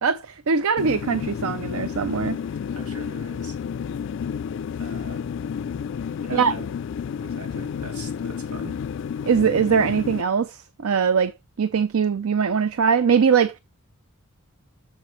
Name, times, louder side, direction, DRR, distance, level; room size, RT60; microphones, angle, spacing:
voice 1, 0.0-2.4 6.3-6.5 9.2-11.3 11.6-13.6, right 6 dB, 70° right, 0.5 m, -21 dB
sound 1, 0.8-10.2, left 7 dB, 55° left, 0.3 m, -31 dB
voice 2, 2.7-3.6 4.7-5.3 6.2-6.7 7.2-8.8, right 2 dB, 85° right, 2.4 m, -41 dB
7.1 x 6.8 x 3.2 m
head